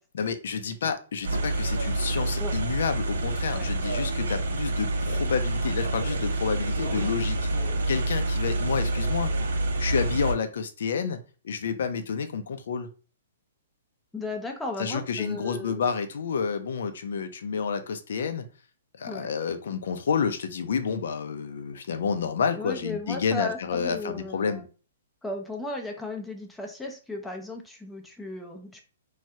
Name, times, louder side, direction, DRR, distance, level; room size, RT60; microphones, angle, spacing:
voice 1, 0.1-9.3 9.8-11.2 11.4-12.9 14.8-18.5 19.0-24.6, left 6 dB, 75° left, 9 dB, 0.5 m, -29 dB
sound 1, 1.2-10.3, right 2 dB, 85° right, 0.6 m, -27 dB
voice 2, 6.9-7.8 14.1-15.8 19.1-19.3 22.6-24.7 25.2-28.8, left 2 dB, 5° left, 3 dB, 0.4 m, -36 dB
3.2 x 2.3 x 2.7 m, 0.36 s
hypercardioid pair, 150°, 0 cm